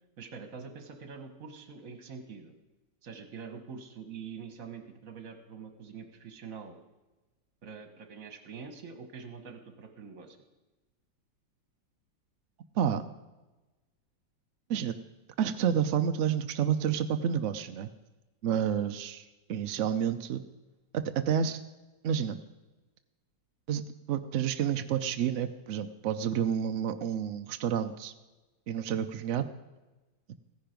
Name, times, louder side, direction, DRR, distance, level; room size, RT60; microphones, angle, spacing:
voice 1, 0.2-2.5 3.0-6.8 7.6-10.4 18.5-18.6, right 5 dB, 50° right, 7 dB, 1.6 m, -45 dB
voice 2, 15.4-17.9 18.4-19.2 19.5-20.4 20.9-21.6 22.0-22.4 23.7-23.8 24.1-28.1 28.7-29.5, right 8 dB, 75° right, 9 dB, 0.7 m, -29 dB
15.5 x 10.5 x 5.1 m, 1.1 s
omnidirectional pair, 2.0 m